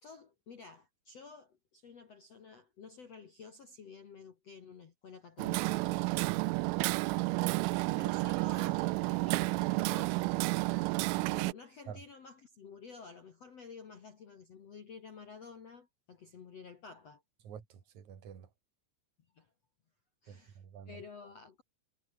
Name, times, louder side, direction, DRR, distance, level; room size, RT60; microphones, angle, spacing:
voice 1, 0.0-5.9 7.9-10.9 11.2-17.2 19.3-19.5 20.2-21.6, left 5 dB, 55° left, 1.9 m, -52 dB
Hammer, 5.4-11.5, right 24 dB, 85° right, 3.0 m, -31 dB
voice 2, 17.4-18.5 20.3-21.0, right 8 dB, 40° right, 3.7 m, -48 dB
omnidirectional pair, 5.8 m